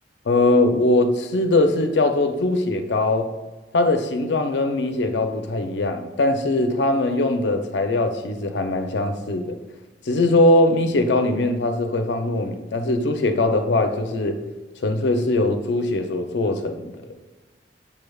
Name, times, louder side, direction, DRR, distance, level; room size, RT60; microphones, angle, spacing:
voice 1, 0.3-3.3 3.7-9.5 10.1-14.4 14.8-16.9, left 2 dB, 70° left, 7 dB, 0.5 m, -21 dB
6.8 x 3.3 x 2.3 m, 1.2 s
head